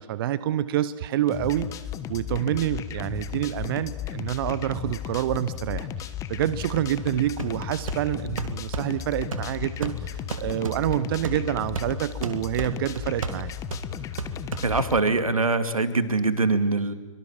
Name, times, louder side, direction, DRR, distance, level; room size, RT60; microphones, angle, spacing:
voice 1, 0.0-1.7 2.1-13.5, right 12 dB, 45° right, 15 dB, 0.9 m, -27 dB
sound 1, 1.3-15.0, left 9 dB, 20° left, 1.2 m, -35 dB
sound 2, 7.4-15.1, right 4 dB, 75° right, 2.3 m, -36 dB
voice 2, 14.6-16.9, right 3 dB, 90° right, 10 dB, 2.4 m, -23 dB
25.0 x 23.5 x 7.4 m, 1.2 s
hypercardioid pair, 130°, 17 cm